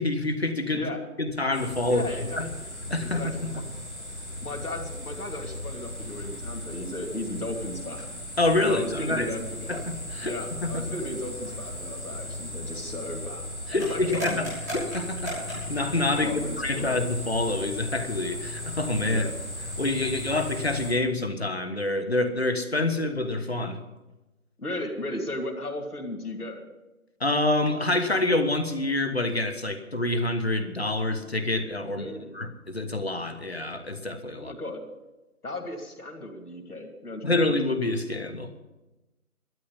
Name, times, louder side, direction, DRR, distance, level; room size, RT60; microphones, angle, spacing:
voice 1, 0.0-0.9 1.2-2.0 2.4-2.5 2.9-3.6 8.4-9.3 9.7-10.3 10.6-10.9 13.7-14.5 14.7-19.2 19.8-23.8 27.2-34.5 37.2-38.6, left 2 dB, 45° left, 7 dB, 1.4 m, -27 dB
voice 2, 0.7-1.1 1.9-2.6 3.0-3.6 4.4-8.0 8.6-9.8 10.2-14.4 16.2-17.0 19.1-19.3 24.6-26.6 31.9-32.4 34.4-34.8 35.4-37.4, left 1 dB, 90° left, 2 dB, 2.9 m, -35 dB
sound 1, 1.5-20.9, left 1 dB, 10° right, 6.5 m, -36 dB
12.5 x 9.2 x 9.9 m, 1.0 s
figure-of-eight pair, 180°, 44 cm